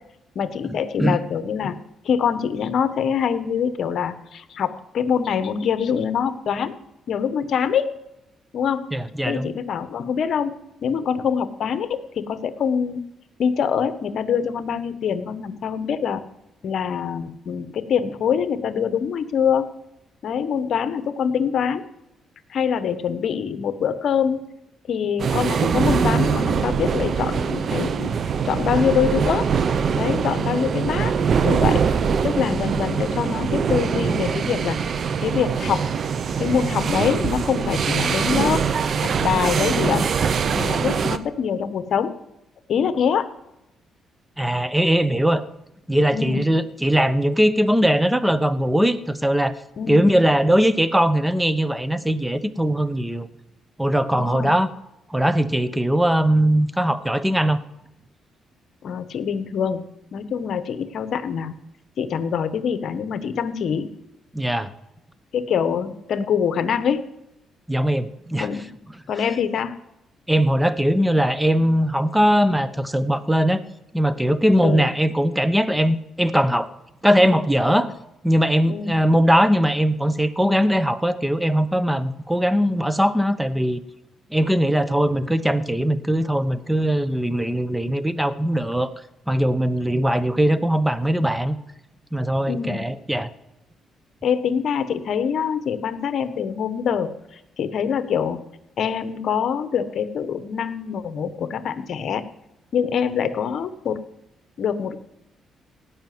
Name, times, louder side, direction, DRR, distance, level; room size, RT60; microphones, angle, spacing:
voice 1, 0.3-1.7 2.0-6.8 7.1-7.9 8.5-8.9 9.2-10.5 10.8-11.9 12.2-13.0 13.4-16.2 16.6-19.7 20.2-21.8 22.5-24.4 24.9-28.1 28.4-29.5 29.9-31.1 31.4-31.8 32.2-34.8 35.2-35.8 36.4-38.6 39.0-40.1 40.5-42.1 42.7-43.2 46.1-46.4 49.8-50.0 54.1-54.5 58.8-59.8 60.1-61.5 62.0-63.9 65.3-67.1 68.4-68.7 69.1-69.8 74.6-74.9 78.7-79.0 92.5-92.8 94.2-97.1 97.6-98.4 98.8-102.2 102.7-104.0 104.6-105.0, left 7 dB, 65° left, 11 dB, 1.2 m, -24 dB
voice 2, 8.9-9.5 44.4-45.4 45.9-49.5 49.9-53.3 53.8-54.7 55.1-57.6 64.3-64.7 67.7-68.5 70.3-73.6 73.9-76.7 77.0-77.9 78.2-83.8 84.3-88.9 89.3-91.6 92.1-93.3, equal, 5° right, 14 dB, 1.0 m, -20 dB
sound 1, 25.2-41.2, right 6 dB, 55° right, 0.8 m, -23 dB
17.5 x 5.9 x 9.4 m, 0.89 s
cardioid pair, 90°, 0 cm